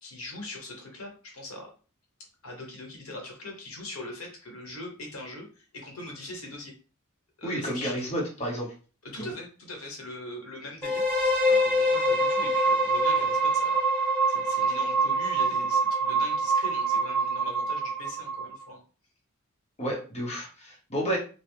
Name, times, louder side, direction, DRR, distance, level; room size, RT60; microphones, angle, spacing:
voice 1, 0.0-1.7 2.2-6.7 7.4-8.1 9.0-13.9 14.3-18.8, left 1 dB, 70° left, 1 dB, 1.2 m, -41 dB
voice 2, 7.4-8.7 9.2-9.3 19.8-21.2, equal, 30° left, -1 dB, 1.0 m, -31 dB
sound 1, 10.8-18.6, right 2 dB, 10° left, 0.7 m, -25 dB
2.9 x 2.2 x 3.4 m, 0.36 s
head